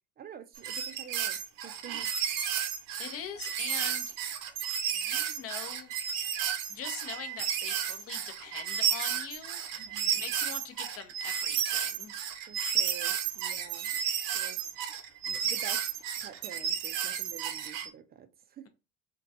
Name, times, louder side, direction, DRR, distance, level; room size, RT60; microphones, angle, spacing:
voice 1, 0.2-2.1 9.8-10.3 12.5-13.9 14.3-14.6 15.3-18.7, right 8 dB, 25° right, 0.4 m, -48 dB
sound 1, 0.5-17.9, right 9 dB, 60° right, 0.7 m, -32 dB
voice 2, 3.0-4.1 4.9-5.9 6.7-9.6 10.1-12.1, left 8 dB, 35° left, 0.7 m, -43 dB
3.0 x 2.4 x 2.6 m
hypercardioid pair, 75°, 39 cm